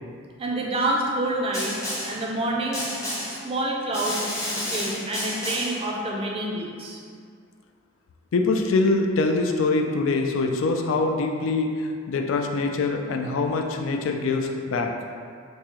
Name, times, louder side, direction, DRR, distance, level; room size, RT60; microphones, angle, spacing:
voice 1, 0.4-1.7 2.0-2.8 3.3-4.3 4.7-7.0, right 1 dB, 25° right, -2 dB, 0.4 m, -27 dB
Snare drum, 1.5-2.2 2.7-3.4 3.9-5.8, left 1 dB, 15° left, 0.6 m, -31 dB
voice 2, 8.3-11.7 12.1-14.9, left 3 dB, 75° left, 3 dB, 0.3 m, -24 dB
3.5 x 2.7 x 3.0 m, 2.2 s
head